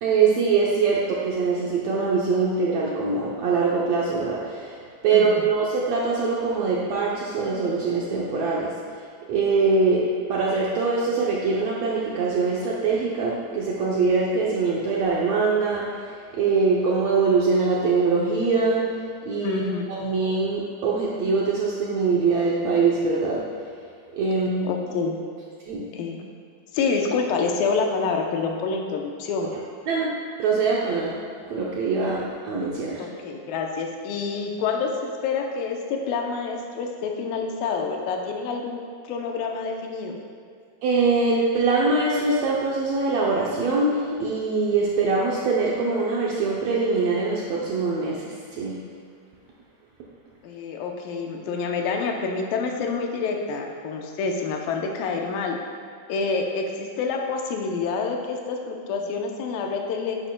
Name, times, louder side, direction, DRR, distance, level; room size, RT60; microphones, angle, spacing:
voice 1, 0.0-9.0 9.3-18.9 19.2-19.6 19.9-23.4 24.1-24.7 25.7-25.8 29.8-30.1 30.4-31.2 31.5-33.1 40.8-48.8, right 4 dB, 75° right, -4 dB, 1.6 m, -23 dB
voice 2, 19.4-19.9 24.6-25.2 25.9-26.2 26.7-29.5 33.0-34.9 35.2-40.2 50.4-55.6 56.1-60.2, left 4 dB, 85° left, 2 dB, 2.5 m, -27 dB
11.0 x 8.6 x 2.2 m, 2.2 s
omnidirectional pair, 3.9 m